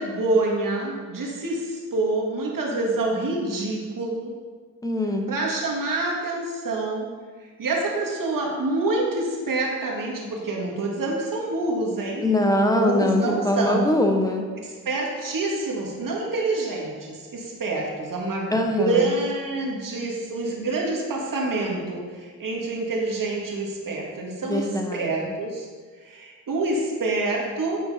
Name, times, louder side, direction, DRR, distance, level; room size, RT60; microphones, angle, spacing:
voice 1, 0.0-4.3 5.3-7.1 7.4-12.2 12.8-13.9 14.9-24.7 24.9-25.7 26.0-27.8, right 2 dB, 60° right, -2 dB, 2.0 m, -27 dB
voice 2, 4.8-5.3 12.2-14.5 18.5-19.1 24.5-25.3, left 1 dB, 10° left, 3 dB, 1.3 m, -23 dB
8.9 x 4.5 x 5.1 m, 1.5 s
supercardioid pair, 55°, 38 cm